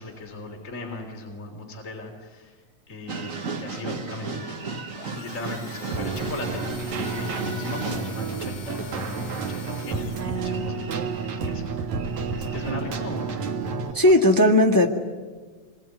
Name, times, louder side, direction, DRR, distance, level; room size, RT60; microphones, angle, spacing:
voice 1, 0.0-4.6 5.2-6.7 7.0-14.4, left 2 dB, 25° left, 0 dB, 3.8 m, -38 dB
sound 1, 3.1-8.3 8.7-13.7 14.0-14.1, right 4 dB, 40° right, 1.1 m, -36 dB
sound 2, 4.9-10.7, left 4 dB, 55° left, 4.0 m, -44 dB
Keyboard (musical), 5.9-13.9, right 4 dB, 75° right, 2.9 m, -30 dB
voice 2, 13.9-14.9, left 1 dB, 10° left, 2 dB, 1.3 m, -16 dB
26.5 x 22.5 x 9.5 m, 1.4 s
omnidirectional pair, 3.3 m